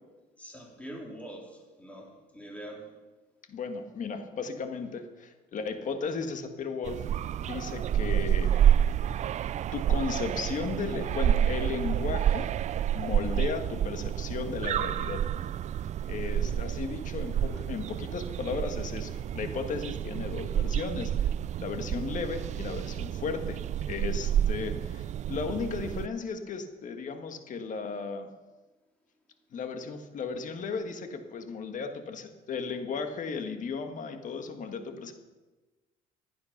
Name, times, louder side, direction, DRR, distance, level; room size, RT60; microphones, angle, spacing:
voice 1, 0.4-2.9, right 1 dB, 10° left, -1 dB, 3.7 m, -44 dB
voice 2, 3.5-7.1 7.4-8.6 9.7-12.5 12.9-15.2 16.0-21.3 21.6-23.6 23.9-28.3 29.5-35.1, left 5 dB, 50° left, 7 dB, 1.6 m, -35 dB
sound 1, 6.8-26.1, right 10 dB, 45° right, 0.4 m, -29 dB
15.5 x 9.4 x 5.9 m, 1.2 s
cardioid pair, 110°, 17 cm